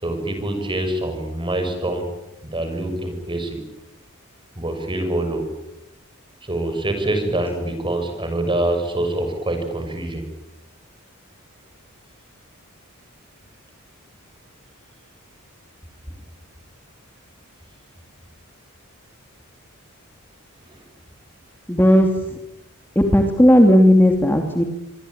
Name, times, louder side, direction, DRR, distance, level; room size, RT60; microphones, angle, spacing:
voice 1, 0.0-2.1 2.4-3.6 4.6-5.5 6.4-10.2, right 1 dB, 25° right, 6 dB, 7.0 m, -25 dB
voice 2, 21.7-22.4 22.9-24.7, equal, 10° left, 4 dB, 2.8 m, -14 dB
27.0 x 23.0 x 9.0 m, 0.87 s
head